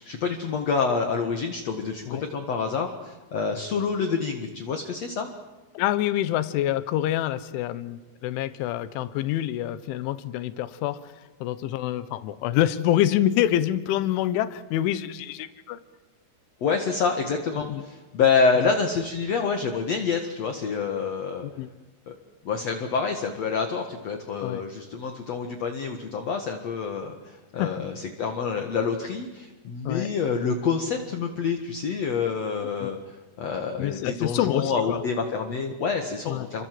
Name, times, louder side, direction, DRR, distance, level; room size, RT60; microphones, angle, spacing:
voice 1, 0.0-5.3 16.6-21.4 22.1-22.2 22.4-36.7, left 5 dB, 55° left, 4 dB, 1.9 m, -27 dB
voice 2, 5.8-11.1 11.4-15.8 17.7-17.8 18.6-18.7 21.4-21.7 24.4-24.6 27.6-27.8 29.9-30.1 32.8-32.9 33.8-35.0 36.3-36.5, left 12 dB, 80° left, 13 dB, 3.5 m, -26 dB
29.5 x 24.5 x 7.8 m, 1.1 s
omnidirectional pair, 5.5 m